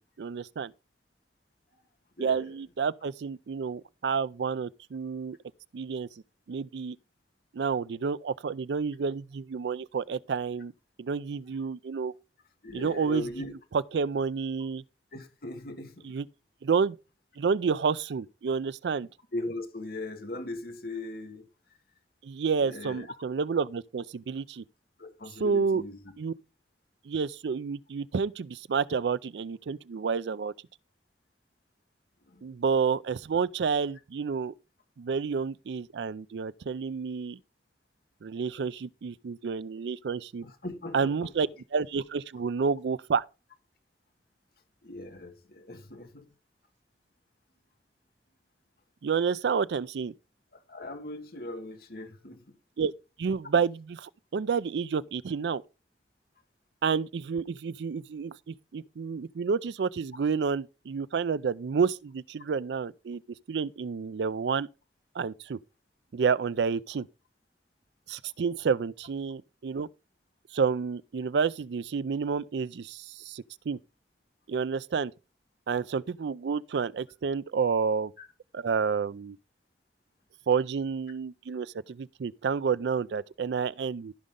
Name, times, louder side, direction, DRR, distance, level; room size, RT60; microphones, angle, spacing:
voice 1, 0.2-0.7 2.2-5.4 5.7-6.1 6.5-7.0 7.5-10.7 11.0-12.1 12.7-13.2 13.7-14.8 16.0-16.3 16.6-17.0 17.4-19.1 22.2-24.6 25.4-25.8 26.2-26.3 27.1-30.5 32.4-34.5 35.0-37.4 38.2-40.5 40.9-43.2 49.0-50.1 52.8-52.9 53.2-55.6 56.8-63.2 63.5-64.7 65.1-65.6 66.1-67.1 68.1-69.9 70.5-73.8 74.5-75.1 75.7-78.1 78.5-79.4 80.5-84.1, right 5 dB, 75° right, 0.4 m, -29 dB
voice 2, 12.6-13.5 15.1-16.1 19.3-21.5 22.6-23.1 25.0-26.0 32.3-32.4 40.4-41.3 44.8-46.3 50.7-52.5 78.2-78.3, left 1 dB, 60° left, 1.6 m, -39 dB
15.0 x 5.2 x 3.7 m
head